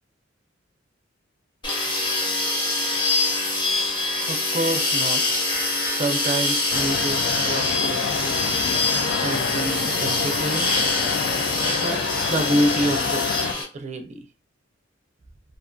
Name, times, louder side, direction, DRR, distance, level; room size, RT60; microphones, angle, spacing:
sound 1, 1.6-13.6, left 2 dB, 25° left, 0.8 m, -24 dB
voice 1, 4.3-5.4 5.9-8.5 9.2-10.8 11.7-14.2, right 1 dB, 35° right, 6 dB, 0.4 m, -28 dB
sound 2, 6.7-13.5, left 6 dB, 60° left, 0.3 m, -28 dB
2.5 x 2.4 x 2.3 m, 0.36 s
head